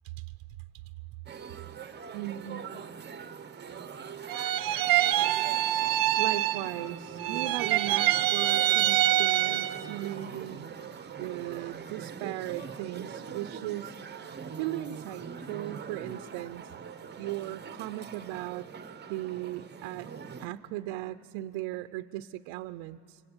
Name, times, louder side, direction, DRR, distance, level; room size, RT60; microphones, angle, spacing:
sound 1, 1.3-20.5, right 6 dB, 25° right, 0.9 m, -42 dB
voice 1, 2.1-2.7 6.2-10.7 11.1-13.9 14.6-16.7 17.2-18.7 19.1-20.1 20.4-23.2, right 15 dB, 80° right, 11 dB, 0.7 m, -37 dB
sound 2, 4.3-6.9 7.2-9.9, right 13 dB, 50° right, 0.8 m, -26 dB
24.5 x 24.5 x 8.8 m, 2.4 s
cardioid pair, 120°, 45 cm